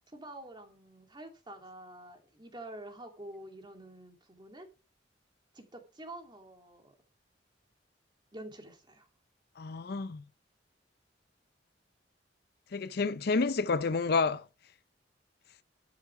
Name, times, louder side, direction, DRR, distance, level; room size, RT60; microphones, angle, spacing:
voice 1, 0.1-4.7 5.5-6.9 8.3-9.1, right 1 dB, 25° right, 2.6 m, -47 dB
voice 2, 9.6-10.2 12.7-14.4, left 4 dB, 60° left, 0.5 m, -29 dB
12.0 x 6.9 x 4.7 m
head